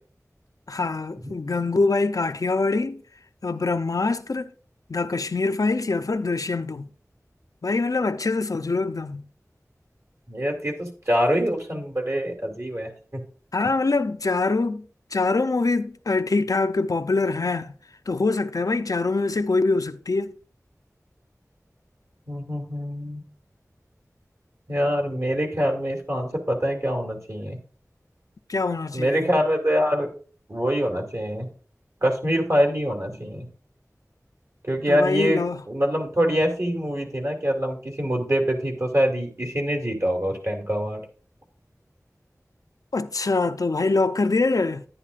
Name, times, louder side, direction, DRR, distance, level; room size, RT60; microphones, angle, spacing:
voice 1, 0.7-3.0 3.4-4.5 4.9-6.9 7.6-9.2 13.5-14.9 15.1-17.7 18.1-20.3 28.5-29.2 34.9-35.6 42.9-44.9, left 3 dB, 75° left, 0.5 m, -24 dB
voice 2, 10.3-13.2 22.3-23.2 24.7-27.6 28.9-30.1 30.5-31.5 32.0-33.5 34.6-35.4 35.7-41.0, equal, 55° right, 2.6 m, -24 dB
10.5 x 9.9 x 2.5 m
wide cardioid pair, 45°, 6 cm